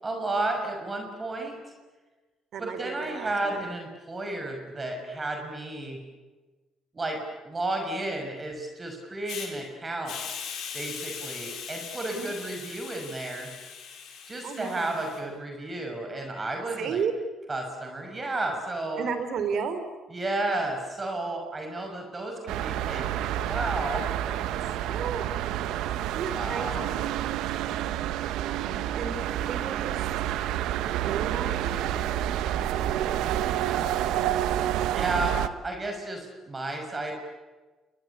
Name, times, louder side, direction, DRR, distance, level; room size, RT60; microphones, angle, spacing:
voice 1, 0.0-1.6 2.6-6.0 6.9-7.2 7.4-10.2 10.7-13.5 14.3-17.0 17.5-19.1 20.1-24.6 26.3-26.9 33.5-34.6 34.9-37.1, right 2 dB, 25° right, 3 dB, 6.2 m, -33 dB
voice 2, 2.5-3.7 12.1-12.3 14.4-15.0 16.8-17.1 19.0-19.8 24.9-25.3 26.1-27.0 28.4-29.2 29.5-30.0 31.0-33.1, right 6 dB, 65° right, 10 dB, 4.0 m, -34 dB
Hiss, 9.3-9.5 10.0-15.2, left 7 dB, 75° left, 6.4 m, -40 dB
sound 1, 22.5-35.5, right 12 dB, 85° right, 1.2 m, -29 dB
29.5 x 21.0 x 8.4 m, 1.2 s
cardioid pair, 85°, 0 cm